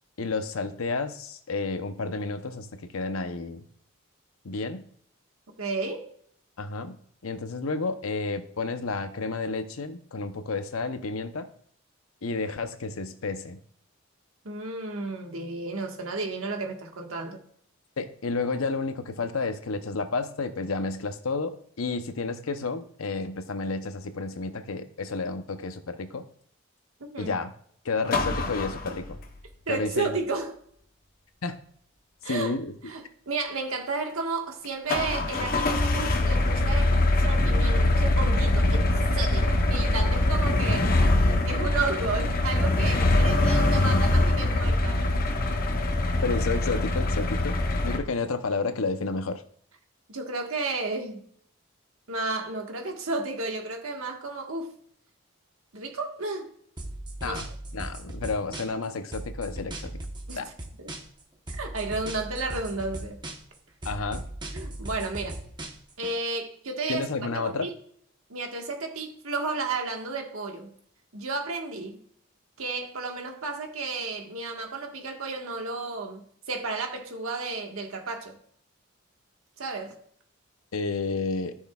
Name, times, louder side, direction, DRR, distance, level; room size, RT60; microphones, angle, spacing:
voice 1, 0.2-3.6 4.4-4.8 6.6-7.0 7.2-11.5 12.2-13.6 18.0-26.2 27.2-27.5 27.8-29.2 29.7-30.2 31.4-31.6 32.2-32.7 46.2-49.4 57.2-60.0 60.3-60.5 63.8-64.2 66.9-67.7 80.7-81.6, left 3 dB, 85° left, 0.8 m, -31 dB
voice 2, 5.6-6.1 14.4-17.4 27.0-27.3 29.7-30.6 32.2-32.5 32.8-38.9 39.1-40.9 41.2-45.0 50.1-51.3 52.1-54.8 55.7-56.5 57.2-57.4 60.3-60.5 60.8-60.9 61.5-63.2 64.5-65.4 66.0-67.1 67.4-67.7 68.3-70.7 71.1-72.0 72.6-78.4 79.6-79.9, right 3 dB, 85° right, 1.5 m, -32 dB
fork lift start and run, 28.1-29.4 34.9-48.0, left 2 dB, 45° left, 0.9 m, -23 dB
sound 1, 56.8-58.8 59.1-61.2 61.5-63.6 63.8-66.1, right 1 dB, 20° right, 1.0 m, -37 dB
13.5 x 6.3 x 2.4 m
head